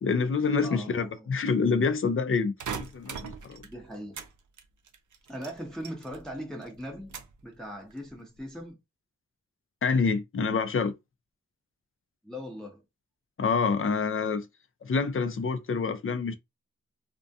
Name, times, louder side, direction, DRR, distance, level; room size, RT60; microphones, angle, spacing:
voice 1, 0.0-3.7 9.8-10.9 13.4-14.5 14.8-16.3, left 5 dB, 45° left, 0.4 m, -27 dB
voice 2, 0.6-1.3 3.6-4.2 5.3-7.2 7.4-8.8 12.2-12.8, equal, ahead, 0.6 m, -40 dB
sound 1, 2.6-4.3 4.6-6.3 6.6-7.4 7.9-8.4, right 6 dB, 80° right, 0.5 m, -40 dB
2.3 x 2.2 x 2.6 m
wide cardioid pair, 65°, 30 cm